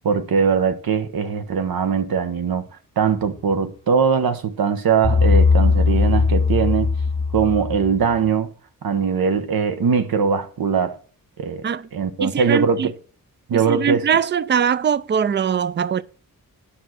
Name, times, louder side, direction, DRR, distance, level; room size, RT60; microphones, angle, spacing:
voice 1, 0.0-2.7 3.0-6.9 7.3-8.5 8.8-11.0 11.4-12.9 13.5-14.0, right 6 dB, 80° right, 1.2 m, -21 dB
sound 1, 5.0-8.2, left 4 dB, 20° left, 0.5 m, -18 dB
voice 2, 12.2-12.9 13.5-16.0, right 7 dB, 30° right, 0.4 m, -21 dB
10.5 x 5.9 x 6.4 m
wide cardioid pair, 130°, 35 cm